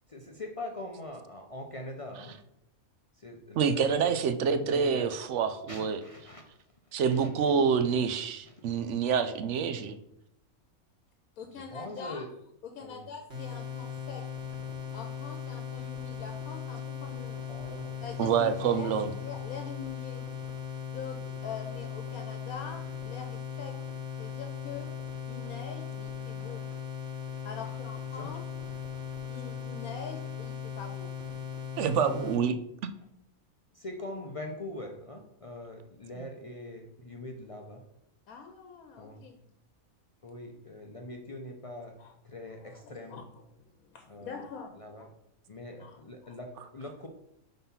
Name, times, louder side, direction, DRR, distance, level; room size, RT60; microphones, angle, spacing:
voice 1, 0.1-2.4 3.2-4.1 4.6-5.1 5.7-6.4 6.9-7.3 8.5-8.7 11.5-12.3 12.8-13.0 17.5-18.0 28.1-28.3 33.7-37.8 39.0-39.3 40.2-42.0 42.2-43.2 44.1-44.4 44.8-45.1 45.5-47.1, left 1 dB, 55° left, 3 dB, 0.3 m, -42 dB
voice 2, 3.5-6.0 6.9-10.0 18.2-19.1 31.8-32.6 36.2-36.3, right 6 dB, 65° right, 10 dB, 0.8 m, -27 dB
voice 3, 11.4-12.3 12.6-14.2 14.9-17.5 18.0-18.9 19.2-20.3 20.9-23.7 24.2-24.9 25.3-26.6 27.4-28.5 29.3-31.1 38.3-39.4 42.0-42.1 42.6-44.7 45.8-46.0, left 6 dB, 80° left, 4 dB, 1.2 m, -44 dB
sound 1, 13.3-32.4, left 7 dB, 50° right, 1.9 m, -38 dB
5.6 x 3.9 x 5.6 m, 0.78 s
omnidirectional pair, 1.5 m